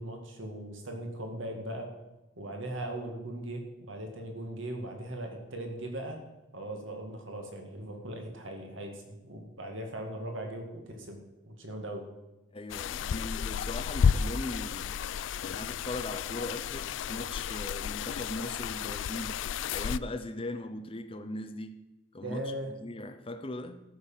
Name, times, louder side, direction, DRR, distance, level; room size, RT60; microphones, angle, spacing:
voice 1, 0.0-1.9 2.4-6.2 6.5-11.2 11.5-12.0 22.2-22.7, right 1 dB, 70° right, 2.1 m, -39 dB
voice 2, 12.5-14.9 15.4-19.4 19.7-21.8 22.1-22.4 22.8-23.8, left 1 dB, 25° left, 0.8 m, -39 dB
sound 1, 12.7-20.0, left 7 dB, 65° left, 0.3 m, -32 dB
13.5 x 6.4 x 7.4 m
head